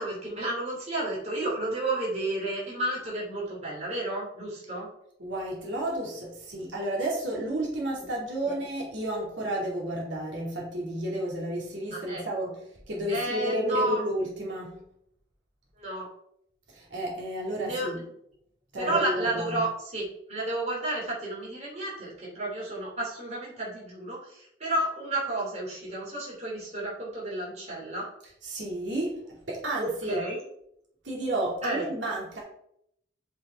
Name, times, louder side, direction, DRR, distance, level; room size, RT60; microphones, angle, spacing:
voice 1, 0.0-4.9 8.4-8.5 11.9-12.5 13.1-14.0 15.8-16.1 17.6-18.0 18.8-28.1 29.8-30.4 31.6-31.9, right 2 dB, 35° right, -4 dB, 3.3 m, -31 dB
voice 2, 5.2-12.5 12.9-14.8 16.7-18.0 18.7-19.6 28.4-29.2 29.5-30.2 31.0-32.4, right 1 dB, 85° right, -3 dB, 2.7 m, -31 dB
7.9 x 5.6 x 4.4 m, 0.73 s
head